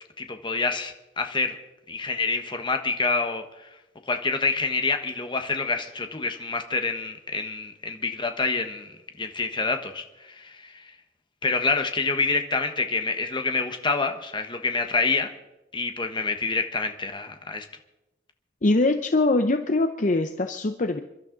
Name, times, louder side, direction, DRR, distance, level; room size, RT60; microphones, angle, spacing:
voice 1, 0.2-1.6 1.9-3.4 4.1-8.9 9.2-10.8 11.4-15.3 15.7-17.7, left 4 dB, 25° left, 6 dB, 1.3 m, -27 dB
voice 2, 18.6-21.0, left 2 dB, 45° left, 7 dB, 0.7 m, -22 dB
28.5 x 12.0 x 3.9 m, 0.96 s
head